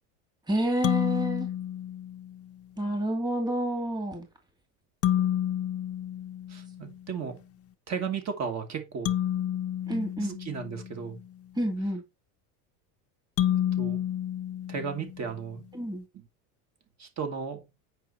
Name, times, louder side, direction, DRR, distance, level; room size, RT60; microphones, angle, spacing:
voice 1, 0.5-1.5 2.8-4.3 9.9-10.4 11.6-12.0 15.7-16.0, right 1 dB, 10° right, 2.6 m, -29 dB
sound 1, 0.8-2.5 5.0-7.0 9.1-11.2 13.4-15.4, left 11 dB, 30° left, 0.8 m, -30 dB
voice 2, 6.5-7.4 7.9-9.1 10.2-11.2 13.5-14.0 14.7-15.6 16.1-16.3 17.0-17.6, right 6 dB, 35° right, 2.9 m, -35 dB
9.1 x 5.9 x 4.4 m
supercardioid pair, 140°, 44 cm